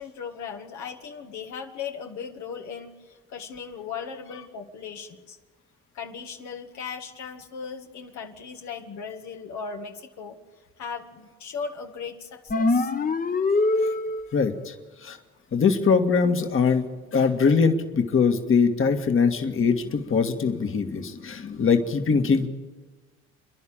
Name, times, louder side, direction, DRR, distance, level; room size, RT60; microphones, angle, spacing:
voice 1, 0.0-5.4 5.9-10.4 10.8-12.9, left 6 dB, 75° left, 3 dB, 1.8 m, -37 dB
sound 1, 12.5-14.5, left 3 dB, 30° left, 1.2 m, -23 dB
voice 2, 14.3-14.7 15.0-15.2 15.5-22.5, left 5 dB, 45° left, 5 dB, 1.9 m, -22 dB
28.5 x 11.0 x 8.9 m, 1.3 s
supercardioid pair, 70°, 29 cm